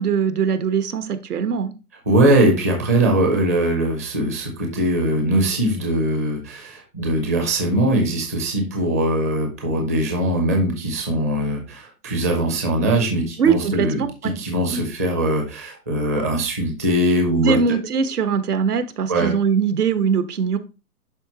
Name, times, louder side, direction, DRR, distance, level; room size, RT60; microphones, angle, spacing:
voice 1, 0.0-1.7 13.4-14.3 14.7-14.8 17.3-20.6, right 6 dB, 80° right, 10 dB, 1.3 m, -21 dB
voice 2, 2.1-17.6 19.1-19.3, right 1 dB, 10° right, 1 dB, 0.5 m, -21 dB
11.0 x 3.7 x 2.9 m, 0.31 s
hypercardioid pair, 155°, 45 cm